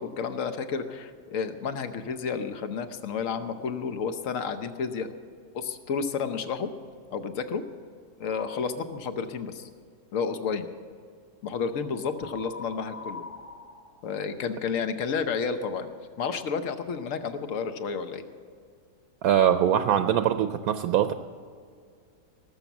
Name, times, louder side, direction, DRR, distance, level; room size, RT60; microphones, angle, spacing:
voice 1, 0.0-5.1 5.5-6.7 7.1-7.6 8.2-9.7 10.1-10.7 11.4-13.2 14.0-15.9 16.2-18.2, left 5 dB, 60° left, 9 dB, 1.2 m, -31 dB
sound 1, 8.2-8.8 12.1-14.8, left 3 dB, 40° left, 1.7 m, -43 dB
voice 2, 19.2-21.1, right 10 dB, 80° right, 9 dB, 1.1 m, -22 dB
18.5 x 7.3 x 7.1 m, 2.1 s
omnidirectional pair, 1.6 m